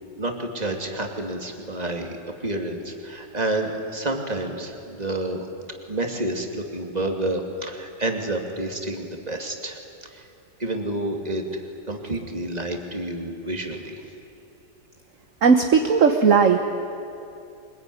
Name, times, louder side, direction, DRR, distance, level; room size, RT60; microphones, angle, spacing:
voice 1, 0.2-5.5 5.9-10.3 10.6-14.0, right 1 dB, 20° right, 3 dB, 2.6 m, -29 dB
voice 2, 15.4-16.6, right 5 dB, 50° right, 6 dB, 1.4 m, -16 dB
24.5 x 21.5 x 9.9 m, 2.7 s
omnidirectional pair, 2.0 m